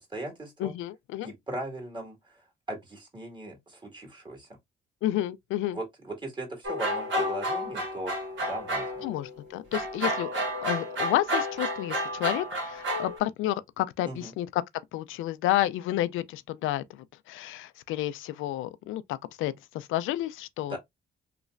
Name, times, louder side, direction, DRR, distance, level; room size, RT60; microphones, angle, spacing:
voice 1, 0.1-0.7 1.2-2.4 2.7-4.5 5.7-8.1 8.4-8.9 14.0-14.3 20.7-20.8, right 1 dB, 25° right, 1.8 m, -38 dB
voice 2, 0.6-1.3 5.0-5.8 9.0-14.6 14.9-20.8, left 13 dB, 85° left, 0.4 m, -31 dB
sound 1, 6.6-9.3 9.7-13.2, equal, 70° right, 1.5 m, -31 dB
3.2 x 3.0 x 2.4 m
cardioid pair, 90°, 20 cm